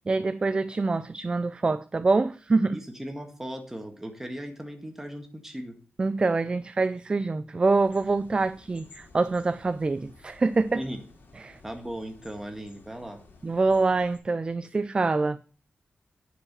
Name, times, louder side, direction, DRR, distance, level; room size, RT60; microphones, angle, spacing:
voice 1, 0.0-2.8 6.0-10.8 11.4-11.6 13.4-15.4, right 3 dB, 25° right, 0.4 m, -25 dB
voice 2, 2.7-5.8 10.7-11.0 11.6-13.2, equal, 10° right, 1.7 m, -37 dB
sound 1, 7.7-14.2, left 3 dB, 85° left, 2.7 m, -54 dB
9.7 x 4.9 x 7.3 m
wide cardioid pair, 140°, 4 cm